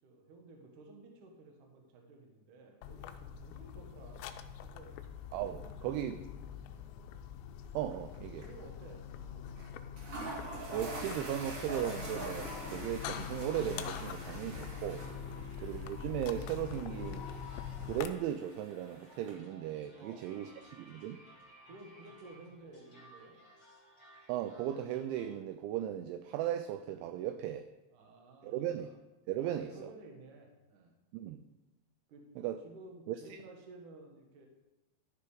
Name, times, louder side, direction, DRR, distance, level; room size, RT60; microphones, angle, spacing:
voice 1, 0.0-4.2 4.6-4.9 5.5-6.2 6.5-6.9 8.4-9.0 9.3-9.7 15.2-15.6 20.0-20.6 21.7-23.4 27.9-29.0 29.4-30.9 32.1-32.2 32.6-34.5, right 2 dB, 60° right, 1 dB, 2.2 m, -54 dB
sound 1, 2.8-18.1, left 8 dB, 85° left, 2.6 m, -44 dB
voice 2, 5.3-6.2 7.7-8.4 10.7-15.1 15.6-17.3 17.8-20.5 20.8-21.2 24.3-27.7 28.4-28.9 29.3-29.9 31.1-31.4 32.4-32.6 33.1-33.4, right 11 dB, 85° right, 9 dB, 2.7 m, -37 dB
sound 2, 7.9-8.2 8.4-8.5 9.6-9.7 10.0-19.3, right 2 dB, 40° right, 2.5 m, -45 dB
sound 3, 10.4-25.4, equal, 30° left, 2.6 m, -59 dB
13.0 x 6.8 x 5.0 m, 1.0 s
omnidirectional pair, 5.8 m